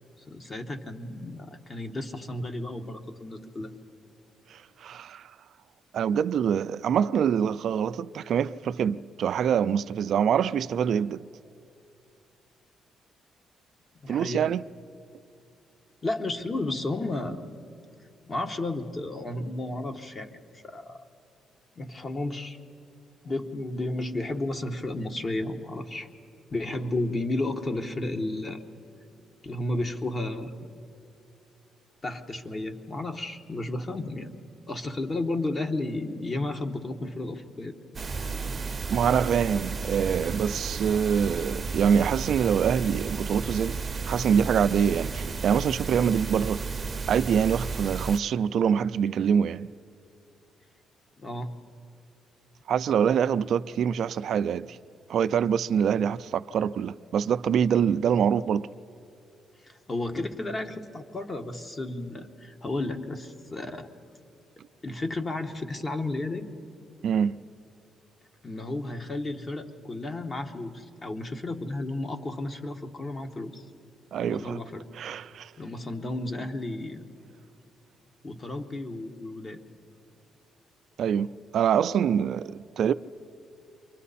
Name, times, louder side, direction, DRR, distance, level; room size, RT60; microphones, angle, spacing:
voice 1, 0.3-3.7 14.0-14.5 16.0-17.4 18.3-21.0 21.8-22.6 23.2-26.1 26.5-28.6 29.4-30.7 32.0-34.3 34.7-37.8 51.2-51.5 59.6-63.9 64.8-66.5 68.4-73.6 74.3-74.9 75.6-77.1 78.2-79.6, left 2 dB, 30° left, 1.5 m, -33 dB
voice 2, 4.5-5.3 5.9-11.2 14.1-14.6 38.9-46.6 47.1-49.7 52.7-54.8 55.1-58.7 67.0-67.4 74.1-74.6 74.9-75.5 81.0-82.9, right 8 dB, 65° right, 0.4 m, -25 dB
sound 1, 37.9-48.2, right 4 dB, 30° right, 0.8 m, -33 dB
29.0 x 24.0 x 4.2 m
cardioid pair, 90°, 0 cm